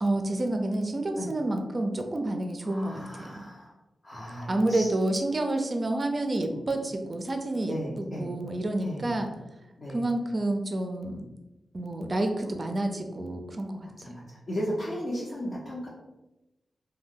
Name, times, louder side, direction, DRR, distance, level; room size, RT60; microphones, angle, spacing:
voice 1, 0.0-3.5 4.5-9.3 9.9-11.2 11.7-13.9, right 1 dB, 40° right, 5 dB, 0.4 m, -29 dB
voice 2, 2.6-3.7 4.0-4.9 6.5-6.7 7.7-8.3 8.8-9.1 9.8-10.0 14.0-15.9, equal, 50° left, -7 dB, 0.7 m, -35 dB
2.6 x 2.2 x 3.6 m, 0.98 s
cardioid pair, 65°, 0 cm